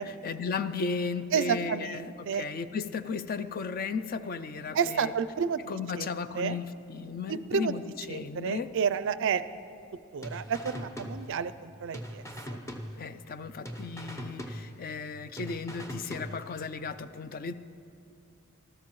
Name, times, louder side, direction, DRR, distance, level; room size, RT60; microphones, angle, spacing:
voice 1, 0.0-5.1 5.7-7.8 8.1-8.7 12.9-17.5, left 5 dB, 40° left, 12 dB, 0.4 m, -35 dB
voice 2, 1.3-2.4 4.7-6.1 6.3-6.6 7.3-7.7 8.1-9.4 10.1-12.2 12.5-12.6, right 6 dB, 60° right, 14 dB, 0.4 m, -30 dB
sound 1, 10.2-11.7 11.9-13.4 13.6-15.1 15.4-16.7, equal, 15° left, 0.8 m, -41 dB
20.0 x 13.5 x 3.1 m, 2.6 s
head